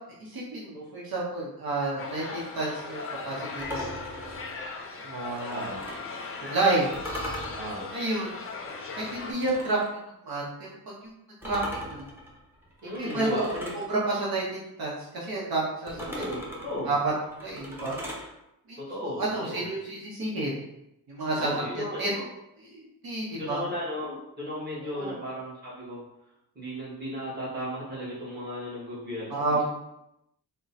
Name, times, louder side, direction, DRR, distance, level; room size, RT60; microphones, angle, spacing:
voice 1, 0.2-4.1 5.0-5.7 6.4-6.9 7.9-8.4 9.1-9.8 10.2-10.7 11.4-11.6 11.9-12.1 13.0-13.5 13.9-14.4 14.8-16.0 16.8-17.1 17.4-17.9 18.7-18.8 19.0-20.6 21.1-22.2 22.6-23.6 24.8-25.1 29.3-29.6, right 2 dB, 70° right, -5 dB, 0.9 m, -30 dB
sound 1, 2.0-9.3, left 4 dB, 35° left, 0.5 m, -39 dB
sound 2, 3.6-6.2 6.9-9.9 11.4-13.9 15.9-18.3, left 1 dB, 5° right, 0.7 m, -40 dB
voice 2, 5.5-5.8 7.5-7.9 12.8-13.7 16.1-16.9 18.8-19.7 21.4-22.2 23.4-26.0 26.5-29.6, equal, 25° right, -6 dB, 1.4 m, -35 dB
3.7 x 2.2 x 4.0 m, 0.86 s
wide cardioid pair, 160°, 38 cm